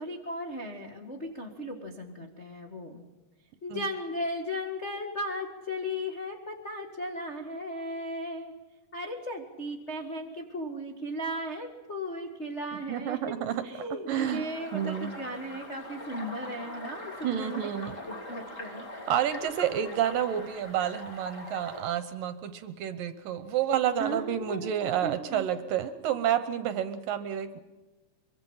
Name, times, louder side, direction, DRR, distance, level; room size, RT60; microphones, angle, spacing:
voice 1, 0.0-3.0 3.6-8.5 8.9-13.3 13.6-18.9 24.0-25.5, equal, 80° left, 1 dB, 0.6 m, -36 dB
voice 2, 12.9-13.6 14.1-14.4 14.7-15.1 17.2-18.0 19.1-27.6, right 10 dB, 70° right, 11 dB, 2.3 m, -29 dB
sound 1, 14.1-21.8, left 1 dB, 20° left, 2.8 m, -42 dB
24.5 x 23.5 x 5.7 m, 1.2 s
omnidirectional pair, 4.8 m